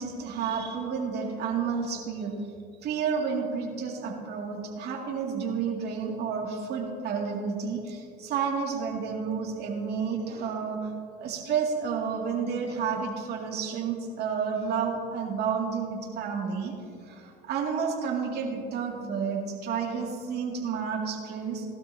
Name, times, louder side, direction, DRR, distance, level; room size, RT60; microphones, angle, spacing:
voice 1, 0.0-2.3 2.8-10.9 11.2-16.7 17.0-21.7, right 6 dB, 60° right, -1 dB, 2.3 m, -30 dB
17.5 x 12.5 x 2.8 m, 2.5 s
supercardioid pair, 85°, 19 cm